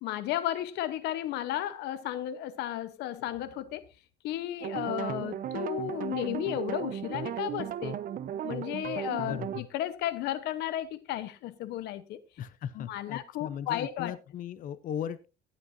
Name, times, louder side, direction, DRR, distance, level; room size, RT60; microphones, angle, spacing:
voice 1, 0.0-3.9 4.2-8.0 8.4-12.2 12.8-14.1, left 12 dB, 85° left, 0.9 m, -34 dB
sound 1, 4.6-9.6, right 10 dB, 55° right, 0.8 m, -35 dB
voice 2, 9.3-9.7 12.4-15.3, left 9 dB, 55° left, 0.6 m, -37 dB
16.5 x 8.7 x 2.6 m
cardioid pair, 110°, 17 cm